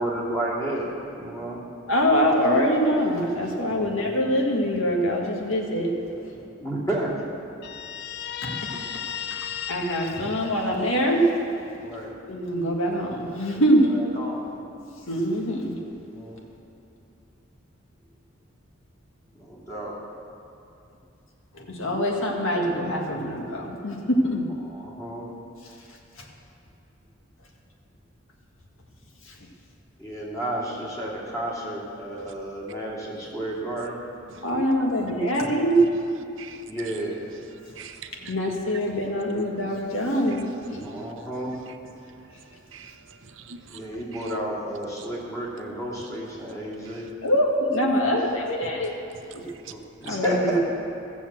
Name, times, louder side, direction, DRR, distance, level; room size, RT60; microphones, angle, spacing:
voice 1, 0.0-1.6 3.7-4.2 6.6-7.2 11.8-12.1 13.5-13.6 13.9-14.5 16.1-16.4 19.3-20.0 24.6-25.3 30.0-34.0 36.7-37.3 40.8-41.5 43.7-47.1 49.7-50.6, right 1 dB, 15° left, -5 dB, 2.7 m, -32 dB
voice 2, 1.9-6.4 8.4-8.5 9.3-11.3 12.3-14.0 15.1-15.7 21.5-24.5 26.2-26.3 29.2-29.4 34.4-35.9 36.2-36.3 38.3-40.8 47.2-49.0 49.3-49.4 50.0-50.6, equal, 80° left, 0 dB, 1.8 m, -24 dB
Guitar, 7.6-11.2, left 9 dB, 50° left, 0.5 m, -35 dB
voice 3, 36.4-37.0 37.4-38.4 39.4-39.5 39.9-40.0 40.3-41.3 41.7-43.9 44.1-44.3 45.0-45.1 46.0-46.1 46.8-47.1 48.6-49.7 50.0-50.1, right 6 dB, 70° right, 7 dB, 0.7 m, -46 dB
15.5 x 7.2 x 7.5 m, 2.6 s
head